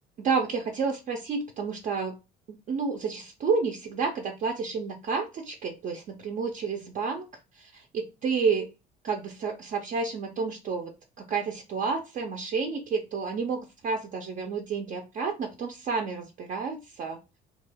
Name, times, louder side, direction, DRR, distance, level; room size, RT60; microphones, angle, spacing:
voice 1, 0.2-2.2 2.7-7.3 7.5-8.7 9.0-10.9 11.2-17.2, right 5 dB, 50° right, 3 dB, 0.4 m, -30 dB
2.3 x 2.2 x 3.3 m, 0.27 s
cardioid pair, 110°, 17 cm